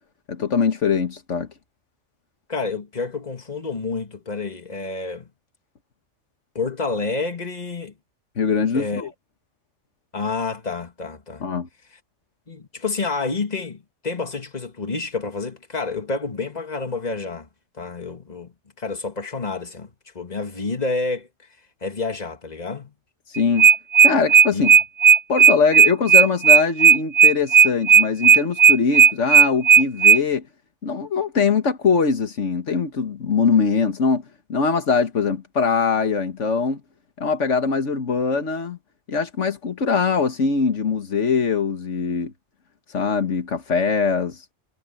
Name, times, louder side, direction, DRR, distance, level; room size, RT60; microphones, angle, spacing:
voice 1, 0.3-1.5 8.4-9.1 11.4-11.7 23.3-23.7 24.0-24.7 25.3-30.5 30.8-34.2 34.5-36.8 37.2-38.8 39.1-42.3 42.9-44.4, left 5 dB, 85° left, 1.8 m, -22 dB
voice 2, 2.5-5.3 6.5-7.9 8.7-9.0 10.1-11.5 12.5-17.5 17.8-21.3 21.8-22.9 24.5-24.6, left 3 dB, 35° left, 2.1 m, -29 dB
sound 1, 23.4-30.2, right 7 dB, 70° right, 0.3 m, -12 dB
omnidirectional pair, 1.2 m